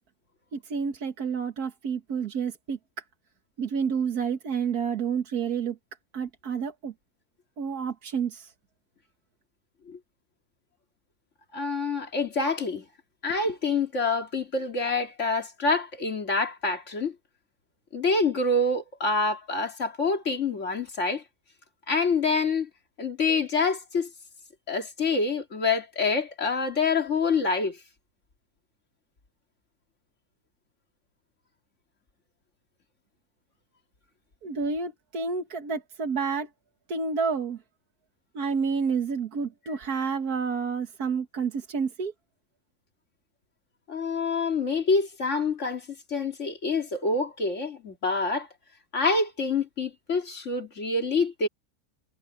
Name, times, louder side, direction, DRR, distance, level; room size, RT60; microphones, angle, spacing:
voice 1, 0.5-2.8 3.6-5.8 6.1-6.9 7.6-8.5 34.4-36.5 36.9-37.6 38.3-42.1, right 5 dB, 90° right, 2.1 m, -29 dB
voice 2, 11.5-12.8 13.2-17.1 17.9-21.2 21.9-22.7 23.0-24.1 24.7-27.8 43.9-45.8 46.1-48.5 48.9-51.5, left 3 dB, 50° left, 2.7 m, -26 dB
omnidirectional pair, 1.6 m